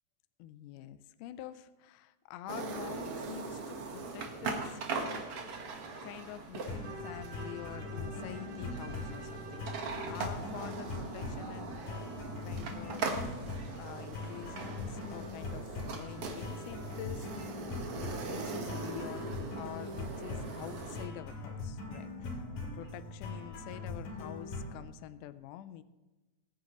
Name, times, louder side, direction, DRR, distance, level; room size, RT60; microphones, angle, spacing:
voice 1, 0.4-5.3 5.9-12.1 12.4-13.2 13.7-17.3 18.2-22.4 22.7-25.8, left 12 dB, 85° left, 12 dB, 1.8 m, -47 dB
sound 1, 2.5-21.0, right 4 dB, 55° right, 1.6 m, -41 dB
sound 2, 6.7-24.8, left 3 dB, 65° left, 3.9 m, -42 dB
Bowed string instrument, 6.8-10.2, right 2 dB, 75° right, 2.9 m, -47 dB
20.5 x 9.7 x 3.1 m, 1.1 s
omnidirectional pair, 4.3 m